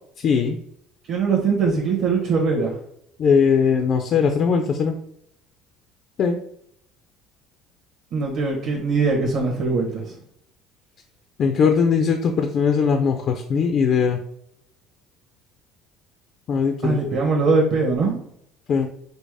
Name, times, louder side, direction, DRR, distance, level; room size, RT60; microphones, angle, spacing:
voice 1, 0.2-0.6 3.2-4.9 6.2-6.4 11.4-14.2 16.5-17.0 18.7-18.9, left 6 dB, 40° left, 5 dB, 0.4 m, -20 dB
voice 2, 1.1-2.8 8.1-10.2 16.8-18.2, right 4 dB, 45° right, -3 dB, 1.1 m, -21 dB
5.2 x 2.0 x 4.8 m, 0.70 s
cardioid pair, 160°, 0 cm